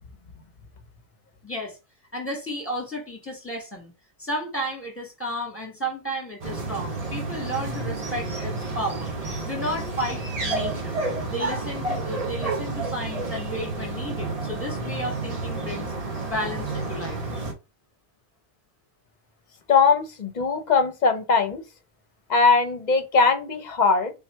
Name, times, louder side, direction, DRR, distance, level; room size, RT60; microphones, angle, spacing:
voice 1, 1.4-1.8 2.1-3.9 4.2-11.0 11.3-15.9 16.2-17.2, equal, 10° left, 1.8 m, -33 dB
sound 1, 6.4-17.5, right 3 dB, 35° right, 1.1 m, -30 dB
voice 2, 19.7-21.6 22.3-24.1, left 4 dB, 45° left, 0.8 m, -20 dB
3.7 x 3.2 x 4.4 m
omnidirectional pair, 1.1 m